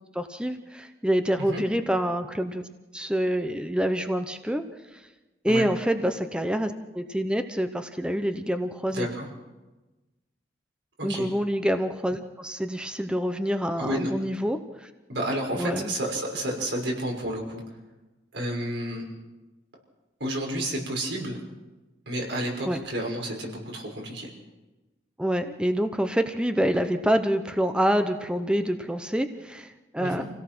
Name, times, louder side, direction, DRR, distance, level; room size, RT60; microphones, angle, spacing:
voice 1, 0.1-2.6 2.9-4.6 5.4-9.1 11.0-14.9 15.5-15.9 22.7-22.8 25.2-30.2, equal, 5° right, 8 dB, 0.9 m, -26 dB
voice 2, 8.9-9.3 11.0-11.3 13.8-14.1 15.1-17.6 18.3-19.0 20.2-21.4 22.1-24.3 30.0-30.2, right 1 dB, 80° right, 0 dB, 5.9 m, -30 dB
27.0 x 17.0 x 6.1 m, 1.1 s
head